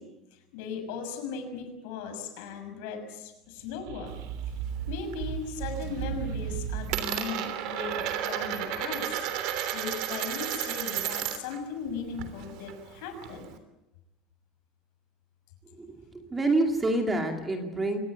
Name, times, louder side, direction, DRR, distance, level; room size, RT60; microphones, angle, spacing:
voice 1, 0.0-4.2 4.9-9.3 9.7-13.5, left 5 dB, 70° left, 7 dB, 6.2 m, -38 dB
sound 1, 3.6-7.3, right 9 dB, 80° right, 2.4 m, -35 dB
Coin (dropping), 4.1-5.2 5.5-6.0 6.3-11.6 11.9-13.6, right 11 dB, 55° right, 3.2 m, -33 dB
voice 2, 15.8-18.0, right 2 dB, 10° right, 4 dB, 2.3 m, -27 dB
25.5 x 19.0 x 8.2 m, 0.98 s
cardioid pair, 175°, 0 cm